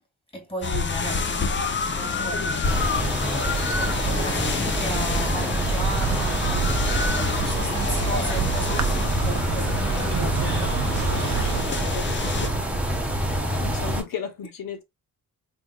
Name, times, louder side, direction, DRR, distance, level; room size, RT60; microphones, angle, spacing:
voice 1, 0.3-2.7 3.6-11.8, right 1 dB, 15° left, 1.9 m, -36 dB
sound 1, 0.6-12.5, left 4 dB, 30° left, 0.6 m, -28 dB
sound 2, 2.6-14.0, right 1 dB, 5° right, 1.0 m, -26 dB
Insect, 5.6-11.6, right 7 dB, 50° right, 0.7 m, -30 dB
voice 2, 11.4-12.5 13.2-14.8, left 7 dB, 65° left, 0.9 m, -36 dB
3.5 x 3.5 x 2.2 m
cardioid pair, 90°, 36 cm